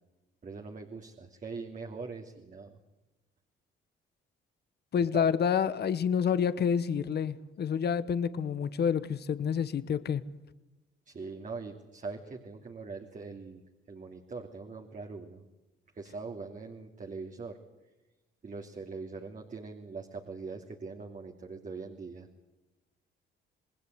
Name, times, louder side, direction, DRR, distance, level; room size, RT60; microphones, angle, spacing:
voice 1, 0.4-2.8 5.1-5.2 11.1-15.4 15.9-17.6 18.4-22.3, right 4 dB, 40° right, 2.7 m, -42 dB
voice 2, 4.9-10.2, left 7 dB, 55° left, 1.2 m, -28 dB
27.5 x 20.0 x 8.1 m
cardioid pair, 90°, 20 cm